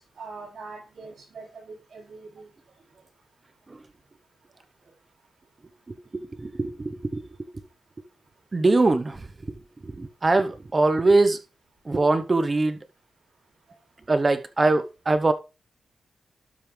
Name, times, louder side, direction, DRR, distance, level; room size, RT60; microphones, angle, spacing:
voice 1, 0.2-2.5, right 4 dB, 60° right, 6.2 m, -42 dB
voice 2, 5.9-7.5 8.5-9.2 9.5-9.6 9.8-11.4 11.9-12.8 14.1-15.3, right 2 dB, 25° right, 0.9 m, -22 dB
12.0 x 5.8 x 3.3 m
wide cardioid pair, 120°, 0 cm